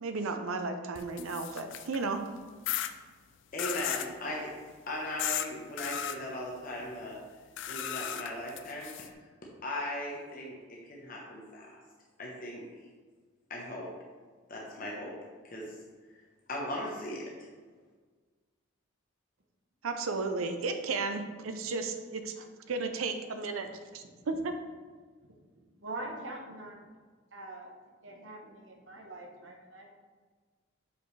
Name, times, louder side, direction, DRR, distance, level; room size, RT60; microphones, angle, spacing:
voice 1, 0.0-2.2 19.8-23.7 23.9-24.5, right 3 dB, 85° right, 7 dB, 0.5 m, -34 dB
sound 1, 1.0-2.0 2.7-2.9 3.6-4.1 5.2-5.5 5.8-6.2 7.6-9.1, left 10 dB, 60° left, 0.4 m, -35 dB
voice 2, 3.5-4.5 4.9-7.2 7.7-9.2 9.6-11.8 12.2-12.7 13.5-13.9 14.5-15.2 15.4-15.8 16.1-16.2 16.5-17.2, left 1 dB, 40° left, -3 dB, 0.9 m, -38 dB
voice 3, 25.8-26.8 27.3-27.7 28.0-29.9, right 2 dB, 60° right, 1 dB, 1.0 m, -43 dB
6.7 x 5.3 x 3.2 m, 1.5 s
head